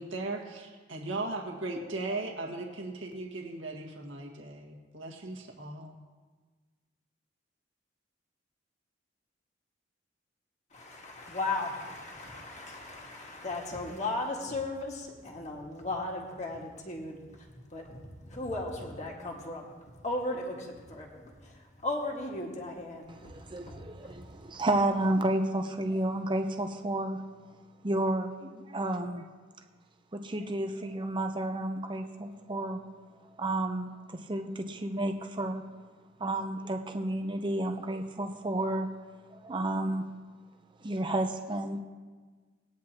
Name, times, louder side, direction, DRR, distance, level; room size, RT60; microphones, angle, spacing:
voice 1, 0.0-5.9, right 2 dB, 85° right, -1 dB, 1.8 m, -37 dB
voice 2, 10.7-19.8 20.0-24.6, left 2 dB, 35° left, -1 dB, 1.8 m, -37 dB
voice 3, 23.2-27.2 27.8-29.3 30.1-32.8 33.4-35.6 36.2-38.9 39.3-40.1 40.8-41.8, right 1 dB, 25° right, 5 dB, 0.7 m, -31 dB
19.5 x 9.7 x 2.9 m, 1.4 s
head